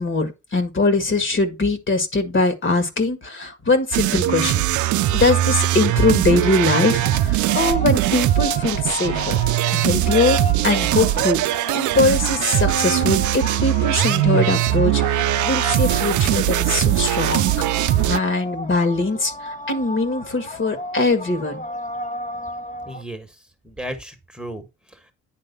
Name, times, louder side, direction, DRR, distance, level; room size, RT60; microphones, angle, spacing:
voice 1, 0.0-4.6 5.1-9.4 9.7-17.5 18.0-21.6, left 3 dB, 40° left, 1.9 m, -21 dB
sound 1, 3.9-18.2, right 14 dB, 75° right, 0.5 m, -21 dB
sound 2, 4.5-23.0, left 1 dB, 25° left, 1.2 m, -34 dB
voice 2, 22.8-23.4 23.6-25.1, right 1 dB, 5° right, 1.6 m, -35 dB
10.0 x 3.6 x 5.4 m
cardioid pair, 90°, 30 cm